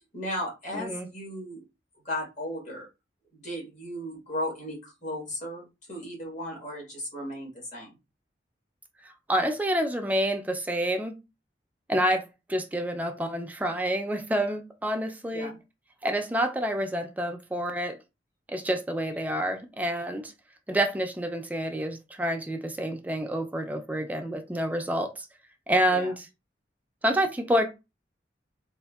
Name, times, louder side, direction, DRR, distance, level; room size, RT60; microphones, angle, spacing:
voice 1, 0.1-1.6 2.0-2.9 3.3-7.9 15.3-15.6 25.9-26.1, left 1 dB, 45° left, 1.5 m, -35 dB
voice 2, 0.7-1.1 9.3-11.2 11.9-12.2 12.5-15.5 16.0-18.0 18.5-20.3 20.7-25.3 25.7-26.2 27.0-27.7, equal, 10° right, 0.4 m, -28 dB
3.6 x 2.4 x 2.3 m
head